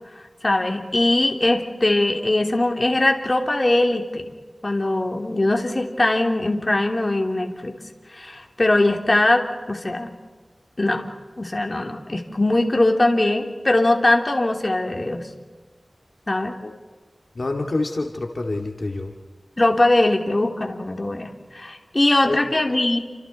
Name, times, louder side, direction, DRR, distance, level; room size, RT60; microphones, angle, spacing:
voice 1, 0.4-4.3 4.6-7.7 8.2-10.1 10.8-11.1 11.4-15.3 16.3-16.6 19.6-23.0, left 2 dB, 45° left, 3 dB, 2.9 m, -21 dB
voice 2, 17.3-19.1 22.2-22.4, left 2 dB, 70° left, 2 dB, 2.2 m, -27 dB
30.0 x 26.0 x 4.2 m, 1.4 s
wide cardioid pair, 50°, 0 cm